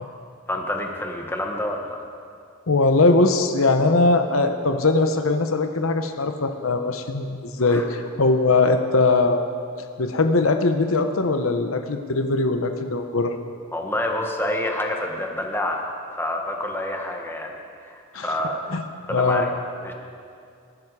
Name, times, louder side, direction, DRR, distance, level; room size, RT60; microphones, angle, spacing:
voice 1, 0.5-2.1 7.7-7.9 13.7-17.5 17.8-18.7 19.1-19.5 19.8-19.9, left 1 dB, 10° left, 1 dB, 1.4 m, -28 dB
voice 2, 2.7-9.4 10.0-13.3 18.1-18.3 18.7-18.8 19.1-19.5, left 3 dB, 85° left, 7 dB, 0.9 m, -20 dB
19.5 x 12.0 x 4.9 m, 2.4 s
head